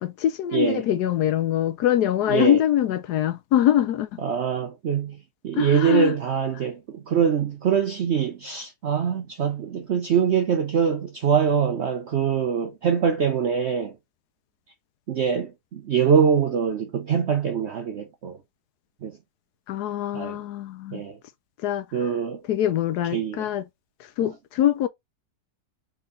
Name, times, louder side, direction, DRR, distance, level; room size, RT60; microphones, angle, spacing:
voice 1, 0.0-4.1 5.5-6.1 19.7-21.0 21.6-21.8 22.5-23.6 24.2-24.9, left 11 dB, 75° left, 1.1 m, -23 dB
voice 2, 0.5-0.8 2.3-2.6 4.2-5.2 5.4-13.9 15.1-18.4 19.0-19.2 20.1-20.4 20.9-21.2 21.9-22.4 23.1-23.5, right 7 dB, 70° right, 0.6 m, -23 dB
3.8 x 3.3 x 3.8 m
omnidirectional pair, 1.8 m